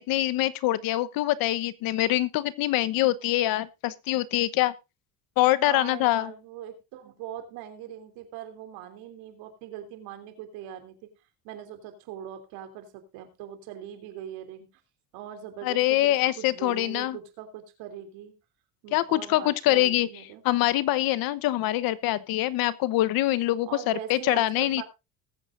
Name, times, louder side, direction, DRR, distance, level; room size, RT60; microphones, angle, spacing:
voice 1, 0.0-4.7 5.4-6.3 15.6-17.2 18.9-20.1 20.4-24.8, left 15 dB, 70° left, 16 dB, 1.0 m, -24 dB
voice 2, 5.6-10.9 11.4-14.7 15.1-18.3 18.8-20.4 23.2-23.3 23.6-24.8, right 10 dB, 80° right, 7 dB, 3.2 m, -41 dB
20.0 x 8.6 x 2.6 m, 0.27 s
cardioid pair, 105°, 36 cm